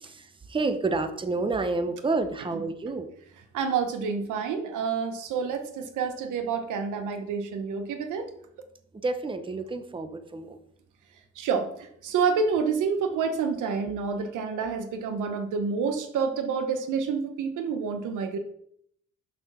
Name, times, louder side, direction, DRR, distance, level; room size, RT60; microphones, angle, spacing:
voice 1, 0.0-3.1 8.9-10.6, right 3 dB, 15° right, 9 dB, 0.8 m, -29 dB
voice 2, 3.5-8.3 11.4-18.4, right 5 dB, 85° right, 7 dB, 1.1 m, -28 dB
6.1 x 4.8 x 5.8 m, 0.70 s
cardioid pair, 90°, 30 cm